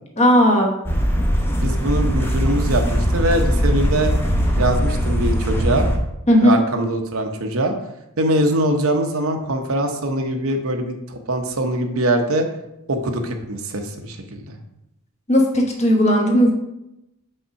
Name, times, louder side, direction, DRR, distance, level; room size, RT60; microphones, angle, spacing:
voice 1, 0.2-0.7 6.3-6.6 15.3-16.5, equal, 30° left, 1 dB, 1.1 m, -15 dB
sound 1, 0.8-6.0, equal, 10° left, 0.7 m, -20 dB
voice 2, 1.6-4.1 4.6-5.9 6.4-7.7 8.2-12.5 12.9-14.6, right 1 dB, 70° right, 5 dB, 0.8 m, -22 dB
5.5 x 3.6 x 5.6 m, 0.86 s
head